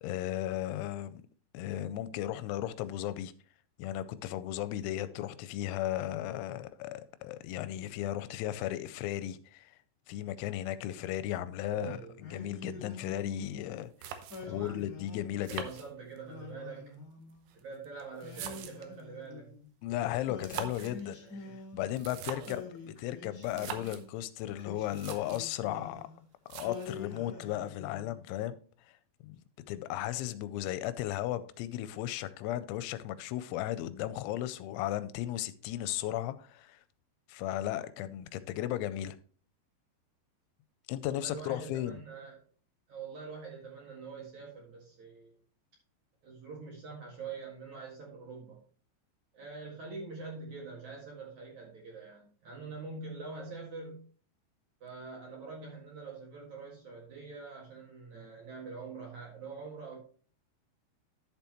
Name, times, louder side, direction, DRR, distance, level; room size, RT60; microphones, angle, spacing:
voice 1, 0.0-1.2 1.5-3.3 3.8-9.7 10.1-14.2 14.5-15.7 19.8-26.1 26.5-28.6 28.8-29.0 29.2-29.4 29.7-36.8 37.3-39.2 40.9-42.0, left 13 dB, 85° left, 2.9 m, -35 dB
voice 2, 11.7-12.2 14.4-14.8 15.4-17.0 17.5-19.5 21.1-21.5 22.2-22.5 41.0-42.4 42.9-45.4 46.2-48.6 49.3-54.0 54.8-60.0, right 4 dB, 50° right, 2.5 m, -45 dB
Singing, 12.2-13.7 14.3-15.6 16.2-17.6 18.2-19.7 20.3-22.1 22.5-24.1 24.6-26.2 26.6-28.2, left 4 dB, 55° left, 1.0 m, -46 dB
sound 1, 13.6-13.7 14.0-14.7 15.4-16.4 17.3-19.0 20.3-21.0 21.9-22.7 23.4-24.1 24.6-24.7 24.9-25.5 26.5-27.1, right 9 dB, 80° right, 3.3 m, -43 dB
11.5 x 7.0 x 3.0 m
omnidirectional pair, 5.4 m